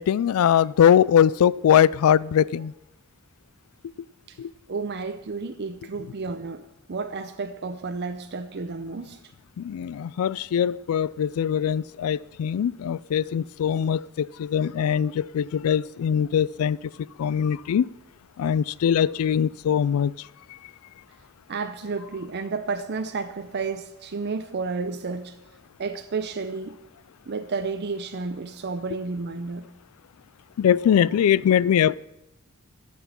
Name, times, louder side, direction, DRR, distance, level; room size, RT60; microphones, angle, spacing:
voice 1, 0.0-2.7 4.4-4.5 9.6-16.8 17.2-17.9 18.4-20.1 30.6-32.0, left 9 dB, 80° left, 21 dB, 0.3 m, -21 dB
voice 2, 4.7-6.6 6.9-9.2 21.5-25.3 25.8-26.8 27.3-29.7, right 4 dB, 50° right, 7 dB, 0.6 m, -31 dB
13.0 x 6.1 x 7.2 m, 0.91 s
head